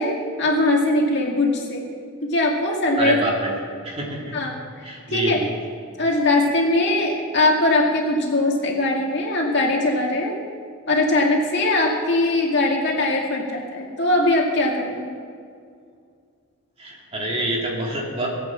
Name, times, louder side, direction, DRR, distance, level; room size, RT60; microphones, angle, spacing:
voice 1, 0.0-1.8 2.2-3.2 4.3-5.4 6.0-10.4 10.9-15.1, left 2 dB, 55° left, -1 dB, 2.4 m, -21 dB
voice 2, 3.0-3.5 3.8-4.3 4.8-5.4 16.8-18.3, right 1 dB, 30° right, -2 dB, 2.6 m, -26 dB
19.0 x 8.6 x 7.4 m, 2.1 s
head